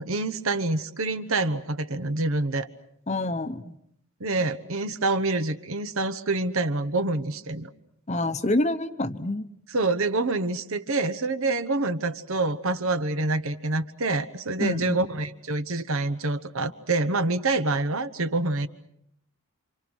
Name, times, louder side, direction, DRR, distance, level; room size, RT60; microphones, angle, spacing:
voice 1, 0.0-2.7 4.2-7.7 9.7-18.7, right 2 dB, 70° right, 11 dB, 1.2 m, -26 dB
voice 2, 3.1-3.8 8.1-9.4 14.6-15.0, left 1 dB, 30° left, 10 dB, 1.0 m, -27 dB
28.5 x 26.5 x 6.3 m, 0.73 s
head